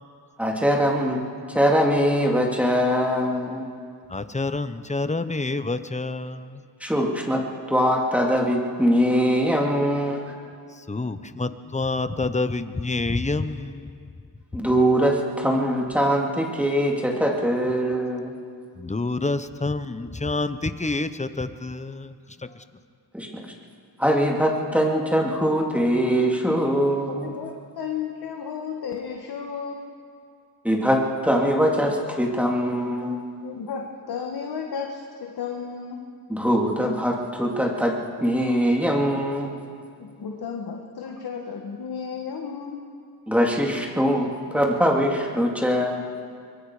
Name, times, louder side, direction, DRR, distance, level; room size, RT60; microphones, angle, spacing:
voice 1, 0.4-1.2 1.5-3.7 6.8-10.2 14.5-18.3 23.1-23.4 24.0-27.4 30.6-33.2 36.3-39.5 43.3-46.0, equal, 5° right, -1 dB, 3.2 m, -22 dB
voice 2, 4.1-6.4 10.9-13.8 18.8-22.1, left 3 dB, 20° left, 11 dB, 1.0 m, -27 dB
voice 3, 27.1-29.8 33.4-36.0 40.2-42.8, left 6 dB, 70° left, 1 dB, 1.8 m, -33 dB
25.5 x 22.0 x 5.0 m, 2.2 s
cardioid pair, 75°, 39 cm